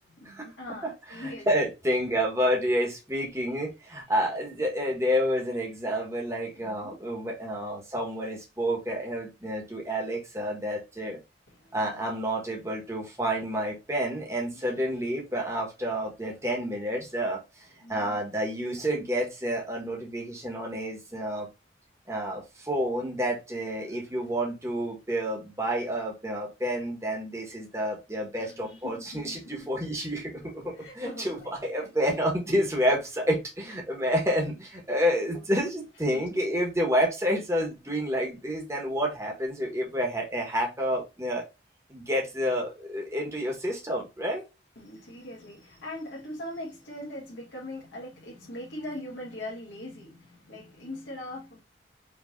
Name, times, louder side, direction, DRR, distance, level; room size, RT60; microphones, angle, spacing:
voice 1, 0.2-1.5 4.1-4.2 6.6-7.0 11.5-12.3 14.5-14.8 15.8-16.0 17.8-18.2 23.9-24.0 24.2-24.3 28.4-29.7 30.7-31.9 35.3-35.7 36.1-36.2 44.7-51.6, left 1 dB, 85° left, 1.6 m, -42 dB
voice 2, 1.2-11.2 11.7-17.4 17.9-21.5 22.1-41.4 41.9-44.4, equal, 15° right, 1.4 m, -29 dB
5.0 x 3.2 x 2.6 m
head